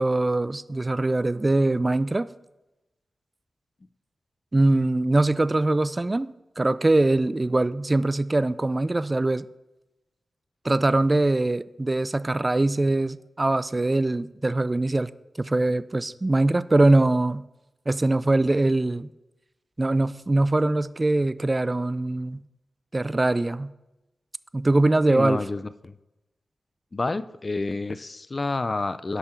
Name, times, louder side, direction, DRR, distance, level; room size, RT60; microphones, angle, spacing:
voice 1, 0.0-2.3 4.5-9.5 10.6-15.1 15.4-17.4 17.9-19.1 19.8-22.4 22.9-23.7 24.5-25.4, right 2 dB, 30° right, 0.3 m, -22 dB
voice 2, 25.1-25.9 26.9-29.2, left 3 dB, 40° left, 0.4 m, -29 dB
11.0 x 5.7 x 4.5 m
cardioid pair, 55°, 0 cm